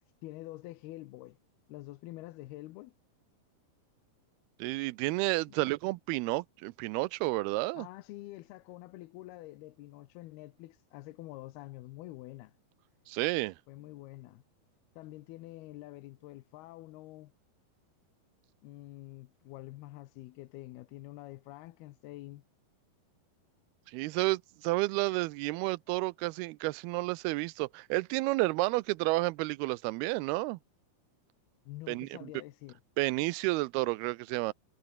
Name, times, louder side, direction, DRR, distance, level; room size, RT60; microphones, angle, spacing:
voice 1, 0.2-1.4 1.7-2.9 7.7-12.5 13.7-14.4 15.0-17.3 18.6-22.4 31.7-32.8, left 17 dB, 90° left, 2.9 m, -47 dB
voice 2, 4.6-7.9 13.1-13.6 23.9-30.6 31.9-32.3 33.0-34.5, right 22 dB, 90° right, 2.6 m, -31 dB
omnidirectional pair, 4.4 m